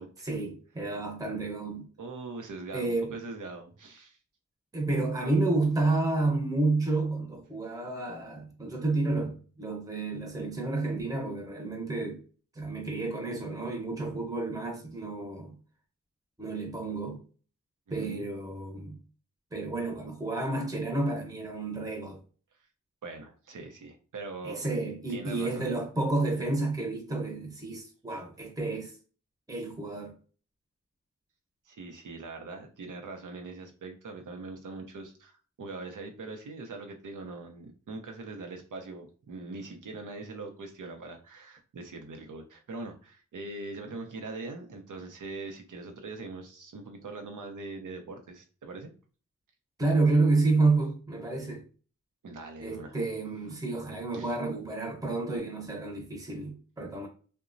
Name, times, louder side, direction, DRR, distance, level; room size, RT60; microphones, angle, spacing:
voice 1, 0.2-1.9 2.7-3.1 4.7-9.3 9.6-12.2 12.5-15.5 16.4-17.2 17.9-19.0 19.5-22.2 24.4-28.9 29.5-30.1 49.8-51.6 52.6-57.1, right 3 dB, 10° right, 0.7 m, -30 dB
voice 2, 2.0-4.2 17.9-18.3 23.0-24.7 25.1-25.7 31.7-48.9 52.2-53.0 54.1-54.3, right 3 dB, 90° right, 0.6 m, -42 dB
2.8 x 2.2 x 2.5 m
cardioid pair, 50°, 30 cm